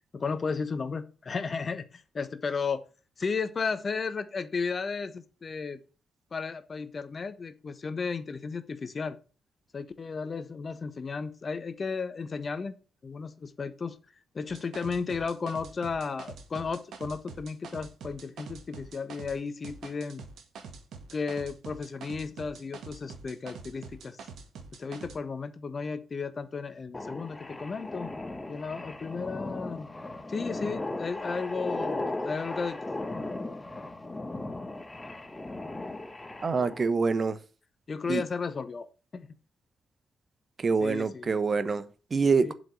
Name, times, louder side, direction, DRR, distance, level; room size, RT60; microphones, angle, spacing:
voice 1, 0.1-2.8 3.2-5.8 6.3-9.2 9.7-12.7 13.0-14.0 14.3-20.2 21.1-24.2 24.8-28.1 28.5-29.9 30.3-32.8 37.9-38.9 39.1-39.3 40.8-41.3 42.4-42.5, left 5 dB, 45° left, 1.1 m, -34 dB
sound 1, 14.5-19.4 19.6-25.2, right 5 dB, 70° right, 1.5 m, -45 dB
sound 2, 26.9-36.9, left 2 dB, 20° left, 1.4 m, -37 dB
voice 2, 36.4-37.4 38.1-38.2 40.6-42.5, right 4 dB, 45° right, 0.9 m, -26 dB
7.6 x 5.2 x 7.4 m
hypercardioid pair, 40°, 0 cm